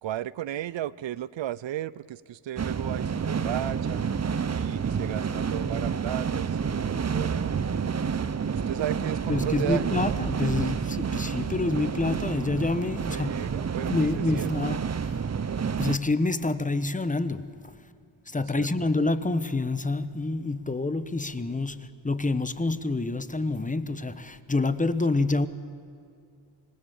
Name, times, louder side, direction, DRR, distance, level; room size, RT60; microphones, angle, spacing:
voice 1, 0.0-4.0 4.4-8.0 8.4-10.2 13.1-14.5 18.5-18.9, right 13 dB, 65° right, 0.7 m, -35 dB
sound 1, 2.6-16.0, right 6 dB, 30° right, 0.8 m, -29 dB
voice 2, 9.3-13.5 13.8-15.2 15.8-17.7 18.3-25.5, left 2 dB, 15° left, 1.1 m, -27 dB
25.5 x 19.5 x 7.1 m
cardioid pair, 80°, 49 cm